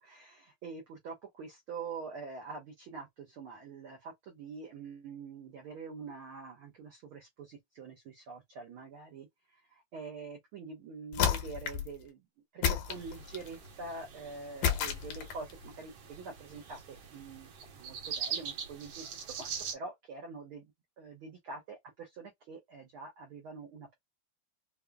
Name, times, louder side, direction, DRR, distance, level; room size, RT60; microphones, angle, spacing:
voice 1, 0.0-9.3 9.7-12.2 12.5-19.1 19.4-20.6 21.0-23.9, right 4 dB, 80° right, 1.1 m, -45 dB
sound 1, 11.1-11.9 12.6-13.5 14.6-15.5, left 8 dB, 75° left, 1.9 m, -31 dB
sound 2, 12.9-19.7, right 7 dB, 65° right, 1.8 m, -43 dB
5.3 x 2.3 x 2.2 m
omnidirectional pair, 3.5 m